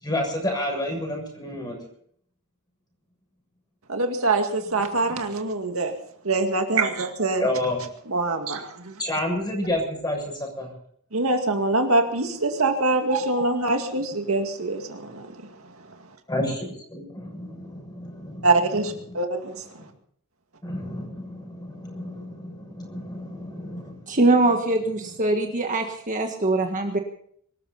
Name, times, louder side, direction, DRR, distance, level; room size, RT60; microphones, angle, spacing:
voice 1, 0.0-1.8 5.1-5.3 7.4-7.8 9.0-10.7 13.3-13.4 16.3-18.5 19.1-19.2 20.6-24.0, left 1 dB, 20° left, 1 dB, 6.9 m, -30 dB
voice 2, 3.9-5.9 6.2-7.4 8.1-9.0 11.1-15.3 18.4-19.6, right 2 dB, 70° right, 4 dB, 2.2 m, -24 dB
voice 3, 24.1-27.0, right 2 dB, 35° right, 3 dB, 1.6 m, -22 dB
24.0 x 14.0 x 4.2 m, 0.64 s
head